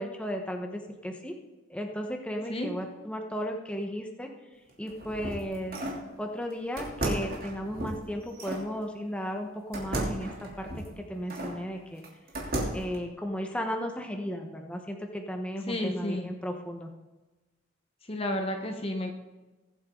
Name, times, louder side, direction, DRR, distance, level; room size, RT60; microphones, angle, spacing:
voice 1, 0.0-1.3 1.7-4.3 4.8-5.8 6.2-10.7 11.0-12.0 12.7-16.9, equal, 5° left, 2 dB, 1.1 m, -35 dB
sound 1, 4.7-6.1 6.8-8.7 9.7-11.6 12.0-13.0, right 1 dB, 45° right, 3.0 m, -34 dB
voice 2, 15.7-16.3 18.1-19.1, left 1 dB, 30° left, 4 dB, 1.0 m, -31 dB
21.0 x 8.2 x 3.8 m, 1.1 s
head